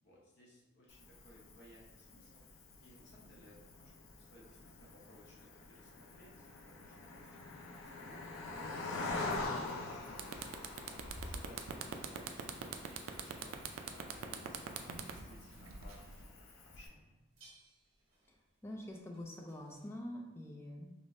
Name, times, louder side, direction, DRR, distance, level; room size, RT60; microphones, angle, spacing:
voice 1, 0.0-7.3 7.5-9.0 9.2-10.4 10.8-13.6 13.9-17.2, equal, 55° left, -4 dB, 0.8 m, -60 dB
Cricket, 0.9-16.9, left 3 dB, 85° left, 0.6 m, -46 dB
sound 1, 9.7-9.8 10.1-16.2, right 7 dB, 85° right, 0.4 m, -43 dB
sound 2, 10.2-20.0, equal, 70° right, 1.2 m, -60 dB
voice 2, 18.6-20.9, left 1 dB, 10° left, 0 dB, 0.3 m, -45 dB
5.0 x 2.0 x 2.6 m, 1.1 s
head